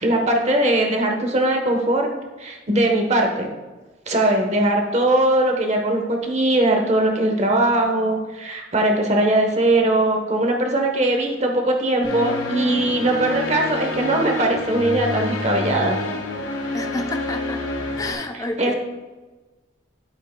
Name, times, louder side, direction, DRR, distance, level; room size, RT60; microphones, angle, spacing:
voice 1, 0.0-2.1 2.4-3.5 4.1-16.0 18.6-18.7, right 1 dB, 35° right, 2 dB, 1.0 m, -20 dB
sound 1, 12.0-18.1, left 3 dB, 90° left, 2.2 m, -28 dB
voice 2, 16.7-17.7 18.0-18.7, left 2 dB, 20° left, 4 dB, 0.6 m, -29 dB
13.0 x 5.5 x 2.2 m, 1.2 s
head